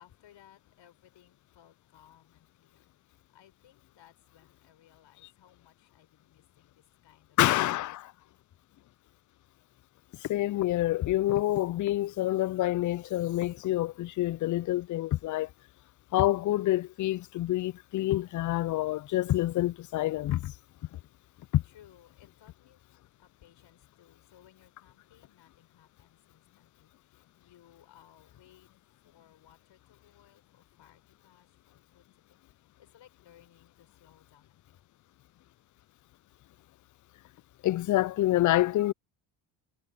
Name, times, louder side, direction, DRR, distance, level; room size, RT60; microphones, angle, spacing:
voice 1, 0.0-7.4 7.8-7.9 8.2-8.4 21.2-34.9, left 11 dB, 65° left, 4.6 m, -61 dB
voice 2, 7.4-8.0 10.2-15.5 16.1-20.5 21.5-21.6 37.6-38.9, left 15 dB, 40° left, 0.4 m, -27 dB
supercardioid pair, 70°, 48 cm